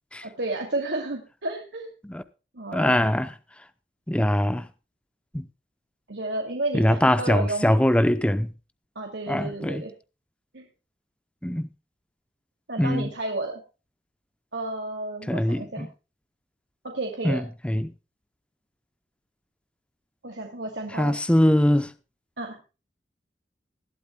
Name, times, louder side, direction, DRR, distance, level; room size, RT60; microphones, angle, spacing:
voice 1, 0.2-1.9 2.5-3.1 6.1-7.6 9.0-9.9 10.5-10.6 12.7-13.6 14.5-15.9 16.9-17.5 20.2-21.2 22.4-22.6, right 2 dB, 80° right, 2.4 m, -32 dB
voice 2, 2.7-3.3 4.1-4.7 5.3-5.4 6.7-8.5 9.3-9.8 11.4-11.7 12.8-13.1 15.3-15.9 17.2-17.9 20.9-21.9, left 1 dB, 5° left, 0.6 m, -22 dB
20.0 x 12.0 x 2.2 m
head